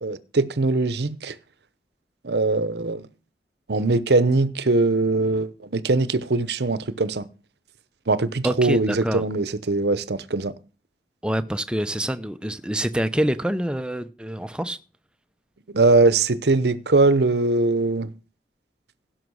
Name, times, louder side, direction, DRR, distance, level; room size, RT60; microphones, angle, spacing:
voice 1, 0.0-1.4 2.2-3.1 3.7-7.3 8.1-10.6 15.7-18.1, right 3 dB, 70° right, 0.8 m, -21 dB
voice 2, 8.4-9.2 11.2-14.8, right 1 dB, 5° right, 0.6 m, -26 dB
16.0 x 6.2 x 6.3 m
head